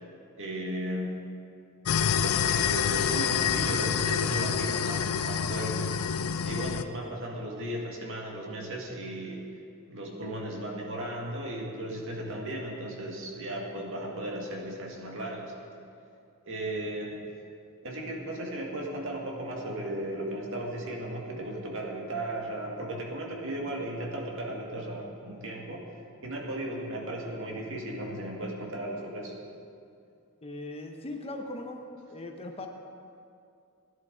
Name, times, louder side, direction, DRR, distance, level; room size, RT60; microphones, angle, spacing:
voice 1, 0.3-1.1 2.2-5.9 6.4-9.5 9.9-15.5 16.5-17.1 17.8-25.9 26.2-29.3, right 1 dB, 65° right, -1 dB, 2.0 m, -36 dB
sound 1, 1.9-6.8, left 7 dB, 80° left, 0.5 m, -27 dB
voice 2, 30.4-31.8 32.1-32.7, left 2 dB, 30° left, 3 dB, 0.9 m, -39 dB
16.5 x 10.5 x 3.9 m, 2.5 s
head